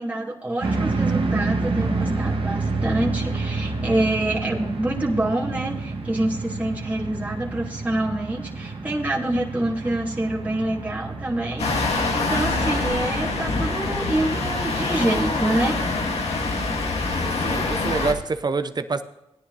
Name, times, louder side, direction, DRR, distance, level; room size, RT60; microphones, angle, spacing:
voice 1, 0.0-15.8, right 1 dB, 15° right, -4 dB, 2.7 m, -26 dB
sound 1, 0.6-15.1, right 3 dB, 55° right, 1.8 m, -29 dB
sound 2, 11.6-18.1, left 3 dB, 70° left, 1.7 m, -25 dB
voice 2, 17.2-19.0, right 4 dB, 40° right, 10 dB, 0.9 m, -26 dB
16.5 x 10.5 x 2.7 m, 0.87 s
cardioid pair, 50°, 11 cm